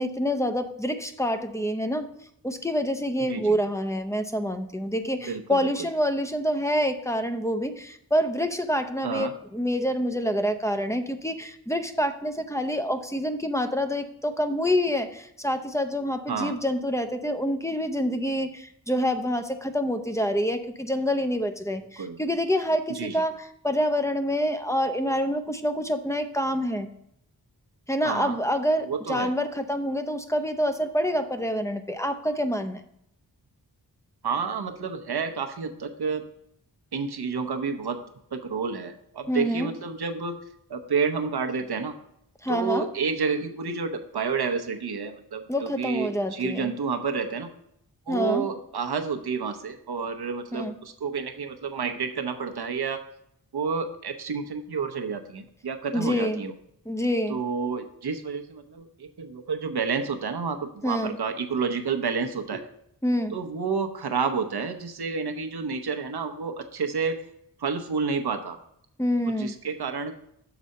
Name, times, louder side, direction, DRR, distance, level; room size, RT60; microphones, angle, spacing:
voice 1, 0.0-2.1 2.4-26.9 27.9-32.8 39.3-39.8 42.4-42.9 45.5-46.8 48.1-48.5 50.5-50.8 55.9-56.4 56.9-57.4 60.8-61.2 63.0-63.4 69.0-69.5, equal, 10° left, 8 dB, 0.6 m, -27 dB
voice 2, 5.2-5.7 9.0-9.3 16.3-16.6 22.0-22.2 22.9-23.2 28.0-28.3 28.9-29.3 34.2-36.2 36.9-38.0 38.3-40.4 40.7-41.9 42.5-47.5 48.1-53.0 53.5-56.5 57.3-62.6 63.3-67.2 67.6-68.6 69.4-70.2, right 5 dB, 75° right, 6 dB, 0.9 m, -30 dB
6.9 x 4.1 x 6.4 m, 0.72 s
wide cardioid pair, 85°, 38 cm